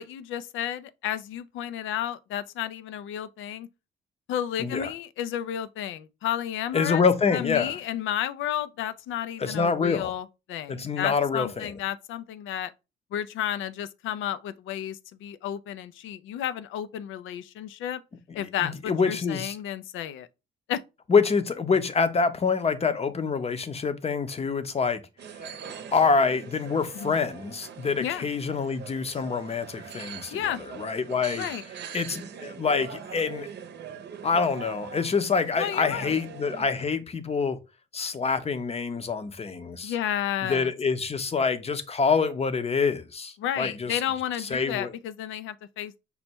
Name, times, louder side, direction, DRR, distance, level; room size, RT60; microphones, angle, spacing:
voice 1, 0.0-3.7 4.3-7.0 7.3-12.7 13.1-18.0 18.3-20.3 20.7-20.8 26.9-27.1 28.0-28.3 30.3-30.6 31.3-31.6 35.6-36.2 39.8-40.7 43.4-46.0, left 10 dB, 80° left, 0.4 m, -32 dB
voice 2, 4.6-4.9 6.7-7.8 9.4-10.1 10.7-11.7 18.6-19.6 21.1-25.0 25.9-31.4 31.9-33.5 34.2-37.6 37.9-39.9 40.5-44.0 44.4-44.9, left 5 dB, 30° left, 0.7 m, -26 dB
sound 1, 25.2-36.7, right 7 dB, 60° right, 0.7 m, -42 dB
5.5 x 2.2 x 4.3 m
cardioid pair, 90°, 20 cm